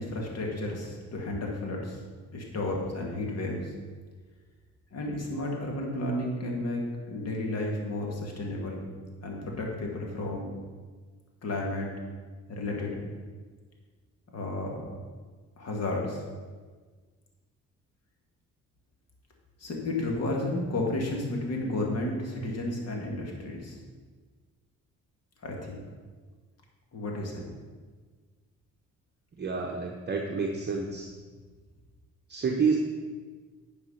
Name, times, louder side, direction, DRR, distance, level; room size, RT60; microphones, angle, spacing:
voice 1, 0.0-2.0 2.3-3.7 4.9-8.9 9.2-10.5 11.4-11.9 12.5-13.0 14.3-14.9 15.6-16.2 19.6-23.8 25.4-25.8 26.9-27.4, left 2 dB, 55° left, 0 dB, 2.3 m, -32 dB
voice 2, 29.4-31.1 32.3-32.8, right 5 dB, 35° right, 1 dB, 0.9 m, -29 dB
9.7 x 4.9 x 5.7 m, 1.5 s
cardioid pair, 90°, 30 cm